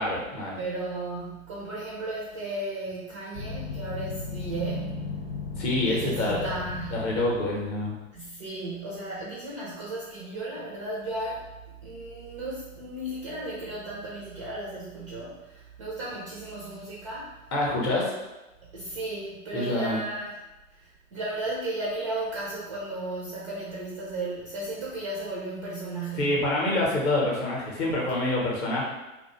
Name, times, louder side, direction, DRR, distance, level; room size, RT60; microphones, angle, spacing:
voice 1, 0.0-0.6 5.6-6.5 6.9-7.9 17.5-18.1 19.5-20.0 26.2-28.8, left 2 dB, 30° left, -3 dB, 0.7 m, -26 dB
voice 2, 0.6-5.1 5.9-7.1 8.1-11.4 11.8-17.4 18.7-20.4 20.7-26.4, right 2 dB, 25° right, -6 dB, 0.3 m, -35 dB
sound 1, 3.3-7.9, left 4 dB, 70° left, 0.7 m, -36 dB
2.5 x 2.1 x 2.9 m, 1.0 s
figure-of-eight pair, 110°, 40 cm